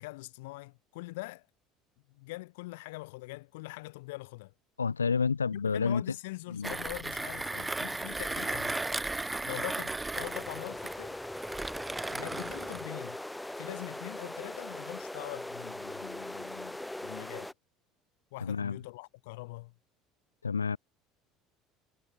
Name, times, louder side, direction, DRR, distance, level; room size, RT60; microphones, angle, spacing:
voice 1, 0.0-1.5 2.1-4.5 5.5-8.8 9.4-11.2 12.1-13.2 13.6-17.5 18.3-19.7, left 22 dB, 70° left, 1.7 m, -43 dB
voice 2, 4.8-6.0 6.5-6.7 18.4-18.8 20.4-20.8, left 5 dB, 90° left, 0.5 m, -29 dB
Mechanisms, 6.6-12.9, right 2 dB, 15° right, 0.4 m, -35 dB
sound 1, 10.1-17.5, left 1 dB, 5° left, 3.2 m, -40 dB
figure-of-eight pair, 65°, 0 cm